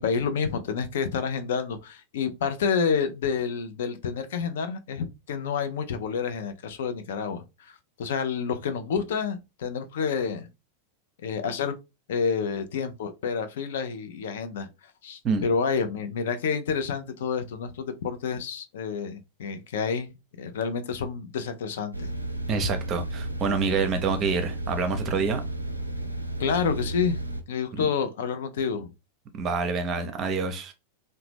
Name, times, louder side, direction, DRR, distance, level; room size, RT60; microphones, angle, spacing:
voice 1, 0.0-7.7 8.0-10.5 11.2-11.8 12.1-14.7 15.0-22.1 26.4-27.2 27.5-28.9, left 6 dB, 60° left, 0.4 m, -29 dB
sound 1, 21.9-27.4, right 1 dB, 85° right, 0.3 m, -33 dB
voice 2, 22.5-25.4 27.7-27.9 29.3-30.7, right 4 dB, 30° right, 0.6 m, -27 dB
2.8 x 2.1 x 3.2 m
figure-of-eight pair, 90°, 0 cm